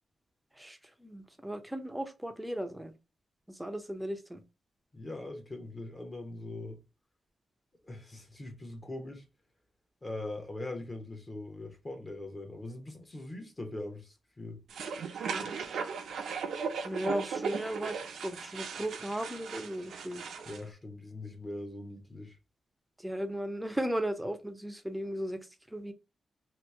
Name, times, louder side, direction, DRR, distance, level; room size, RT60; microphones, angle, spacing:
voice 1, 0.6-2.9 3.5-4.4 15.3-15.9 16.8-20.2 23.0-25.9, right 1 dB, 5° right, 0.5 m, -36 dB
voice 2, 4.9-6.8 7.8-9.2 10.0-14.6 20.4-22.4, left 2 dB, 25° left, 0.8 m, -41 dB
sound 1, 14.7-20.6, right 6 dB, 85° right, 0.6 m, -37 dB
2.9 x 2.4 x 3.3 m
wide cardioid pair, 145°, 0 cm